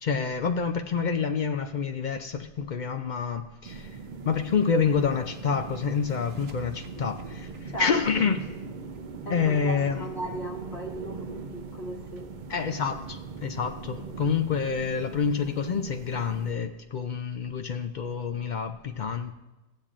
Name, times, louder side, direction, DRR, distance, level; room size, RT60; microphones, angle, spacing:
voice 1, 0.0-3.9 4.2-8.6 9.3-10.1 12.5-19.3, left 6 dB, 60° left, 7 dB, 0.5 m, -28 dB
sound 1, 3.6-16.5, right 4 dB, 55° right, 0.6 m, -40 dB
sound 2, 3.9-9.7, right 1 dB, 70° right, 1.0 m, -52 dB
voice 2, 9.3-12.2, right 1 dB, 75° left, -4 dB, 1.6 m, -37 dB
15.0 x 8.6 x 2.5 m, 1.1 s
omnidirectional pair, 1.1 m